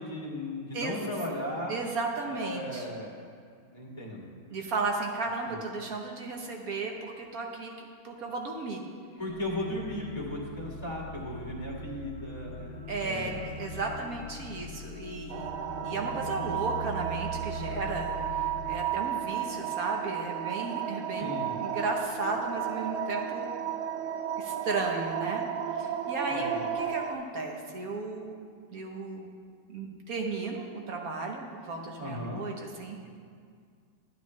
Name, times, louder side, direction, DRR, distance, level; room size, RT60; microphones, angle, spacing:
voice 1, 0.0-1.7 2.3-3.1 3.7-4.6 5.5-5.6 9.2-13.4 21.2-21.6 26.3-26.6 32.0-32.4, left 1 dB, 15° left, -4 dB, 1.6 m, -36 dB
voice 2, 0.7-1.1 1.7-2.9 4.5-8.8 12.9-15.6 15.8-21.3 21.6-23.5 24.4-25.4 25.7-28.4 28.7-29.3 29.7-33.1, right 3 dB, 55° right, 2 dB, 1.1 m, -34 dB
sound 1, 9.3-18.8, equal, 60° left, 1.6 m, -41 dB
sound 2, 15.3-27.1, right 9 dB, 80° right, 1.3 m, -33 dB
12.0 x 9.9 x 3.1 m, 2.2 s
omnidirectional pair, 2.3 m